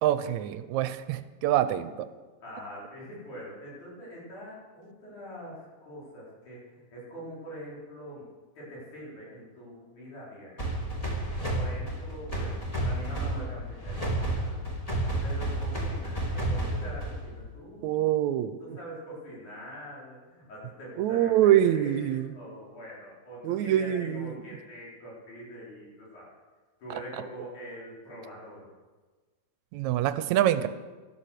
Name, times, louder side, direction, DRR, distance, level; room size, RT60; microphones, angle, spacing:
voice 1, 0.0-2.1 17.8-18.8 21.0-22.3 23.4-24.4 29.7-30.7, right 12 dB, 80° right, 12 dB, 1.9 m, -25 dB
voice 2, 2.4-8.2 8.5-10.7 11.5-12.6 12.8-14.7 15.2-18.0 18.6-26.3 26.8-28.7, equal, 80° left, -6 dB, 6.4 m, -44 dB
sound 1, 10.6-17.4, right 1 dB, 15° left, 2.3 m, -31 dB
12.5 x 12.0 x 6.6 m, 1.3 s
omnidirectional pair, 3.4 m